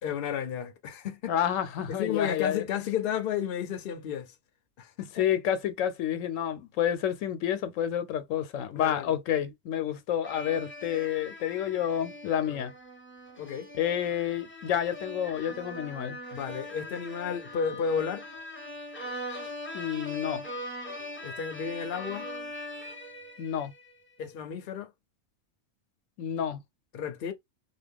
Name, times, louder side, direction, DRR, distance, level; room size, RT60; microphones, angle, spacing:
voice 1, 0.0-1.3 1.9-4.3 4.8-5.3 8.8-9.1 12.5-12.7 13.4-13.7 16.3-18.3 21.2-22.3 24.2-24.9 26.9-27.3, left 8 dB, 55° left, 0.7 m, -32 dB
voice 2, 1.3-2.6 5.0-12.7 13.8-16.2 19.7-20.4 23.4-23.7 26.2-26.6, left 10 dB, 85° left, 1.0 m, -29 dB
sound 1, 10.2-23.9, left 1 dB, 15° left, 0.4 m, -41 dB
2.9 x 2.2 x 3.4 m
omnidirectional pair, 1.3 m